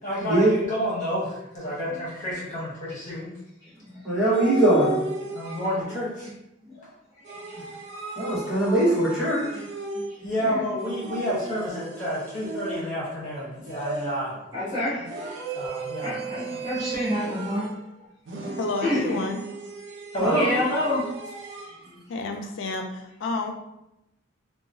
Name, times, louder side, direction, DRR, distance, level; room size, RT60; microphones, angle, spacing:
voice 1, 0.0-3.3 5.2-6.3 10.2-14.3 15.5-16.2 16.5-16.6 20.1-20.4, equal, 40° left, -5 dB, 1.0 m, -30 dB
voice 2, 4.0-5.0 8.2-9.4 20.2-20.5, right 1 dB, 5° right, -10 dB, 1.2 m, -21 dB
sound 1, 4.3-6.0 7.2-10.3 10.8-13.1 13.7-14.4 15.0-17.8 18.3-21.8, right 3 dB, 60° right, 0.5 m, -35 dB
voice 3, 7.2-7.6 9.5-9.7 9.9-10.1 10.4-10.6 14.5-15.5 15.8-17.7 18.8-19.3 20.2-21.1 21.8-22.0, left 1 dB, 25° right, -15 dB, 1.1 m, -29 dB
voice 4, 18.6-19.5 22.1-23.5, left 3 dB, 70° left, 4 dB, 0.4 m, -30 dB
2.8 x 2.2 x 2.6 m, 0.87 s
head